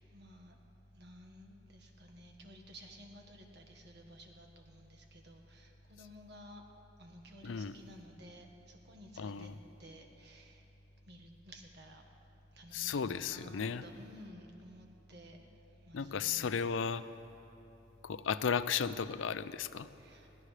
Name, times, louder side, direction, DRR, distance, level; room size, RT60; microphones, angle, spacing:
voice 1, 0.1-0.5 1.0-6.6 7.0-9.5 9.8-10.6 11.1-12.0 12.6-15.4 15.9-16.6 20.0-20.3, equal, 60° right, 2 dB, 1.6 m, -54 dB
voice 2, 7.4-7.8 9.2-9.6 12.7-13.8 15.9-17.0 18.0-19.9, left 6 dB, 85° left, 14 dB, 0.5 m, -35 dB
22.0 x 16.0 x 3.3 m, 3.0 s
head